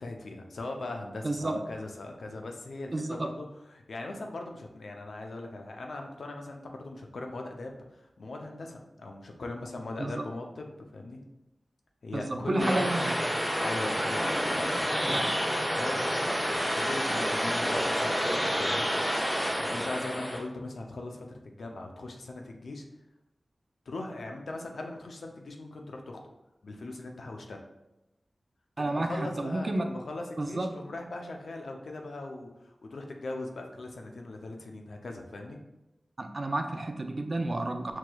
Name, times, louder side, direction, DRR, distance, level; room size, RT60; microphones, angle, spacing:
voice 1, 0.0-11.2 12.0-13.0 13.6-15.3 15.7-16.2 16.4-18.9 19.5-22.8 23.9-26.2 26.6-27.6 28.8-32.5 32.8-35.6, left 2 dB, 85° left, 2 dB, 0.5 m, -40 dB
voice 2, 1.2-1.6 2.9-3.3 10.0-10.2 12.1-13.1 15.1-15.3 28.8-29.9 30.4-30.7 36.2-38.0, right 2 dB, 50° right, 5 dB, 0.4 m, -31 dB
sound 1, 12.6-20.4, equal, 10° left, 0.9 m, -29 dB
4.5 x 2.9 x 2.2 m, 0.93 s
cardioid pair, 45°, 0 cm